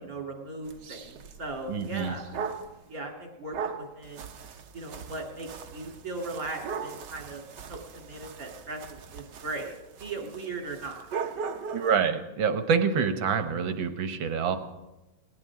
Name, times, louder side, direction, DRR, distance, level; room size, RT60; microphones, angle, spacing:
voice 1, 0.1-2.4 2.9-4.3 4.7-7.4 7.7-9.7 10.0-11.3, right 2 dB, 45° right, 0 dB, 3.6 m, -38 dB
sound 1, 0.7-2.8 3.5-12.1, right 6 dB, 65° right, 1.6 m, -39 dB
voice 2, 1.7-2.1 11.7-14.6, right 6 dB, 80° right, 9 dB, 1.9 m, -26 dB
20.0 x 18.5 x 3.7 m, 1.1 s
omnidirectional pair, 2.1 m